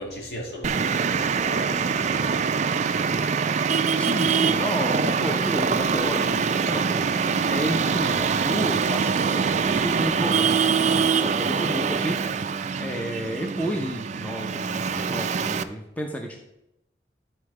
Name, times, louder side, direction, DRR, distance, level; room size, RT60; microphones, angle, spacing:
voice 1, 0.0-3.7, equal, 65° left, -1 dB, 2.3 m, -39 dB
Traffic noise roadway noise, 0.6-15.6, right 5 dB, 40° right, 0.4 m, -24 dB
voice 2, 3.9-16.4, equal, 10° left, 2 dB, 0.6 m, -31 dB
10.5 x 4.3 x 4.8 m, 0.89 s
head